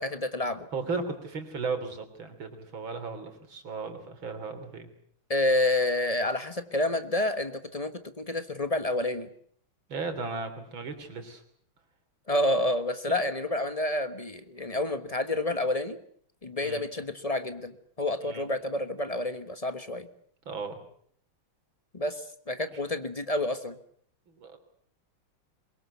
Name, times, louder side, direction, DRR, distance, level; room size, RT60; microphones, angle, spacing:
voice 1, 0.0-0.7 5.3-9.3 12.3-16.0 16.4-20.1 21.9-23.7, left 1 dB, 20° left, 11 dB, 1.1 m, -29 dB
voice 2, 0.7-4.9 9.9-11.4 16.6-16.8 18.2-18.5 20.5-20.8 22.7-22.8 24.4-24.6, right 4 dB, 70° right, 7 dB, 4.0 m, -35 dB
23.0 x 22.0 x 8.1 m, 0.62 s
omnidirectional pair, 2.3 m